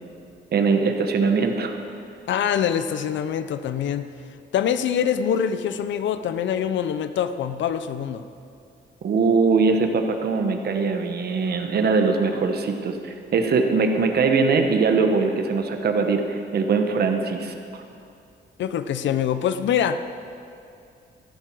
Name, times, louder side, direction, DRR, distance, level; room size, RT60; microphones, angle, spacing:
voice 1, 0.5-1.8 9.0-17.8, right 4 dB, 55° right, 5 dB, 1.1 m, -21 dB
voice 2, 2.3-4.1 4.5-8.3 18.6-20.0, left 8 dB, 80° left, 11 dB, 0.6 m, -24 dB
15.0 x 11.5 x 4.6 m, 2.5 s
wide cardioid pair, 160°, 19 cm